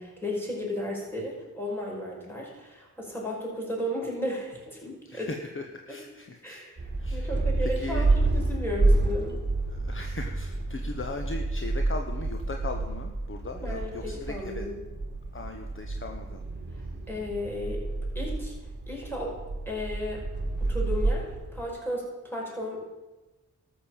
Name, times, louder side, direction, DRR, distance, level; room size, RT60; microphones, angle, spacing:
voice 1, 0.0-5.3 5.9-6.0 6.4-6.7 7.1-9.4 13.6-14.8 17.1-17.8 18.2-18.5 18.9-19.3 19.7-20.2 20.6-22.9, left 1 dB, 5° left, -3 dB, 5.2 m, -34 dB
voice 2, 5.0-7.3 7.6-8.1 9.7-14.7 15.3-16.5, left 3 dB, 40° left, 4 dB, 1.0 m, -39 dB
sound 1, 6.8-21.7, right 2 dB, 30° right, 1.9 m, -29 dB
13.0 x 6.8 x 7.2 m, 1.1 s
cardioid pair, 65°, 32 cm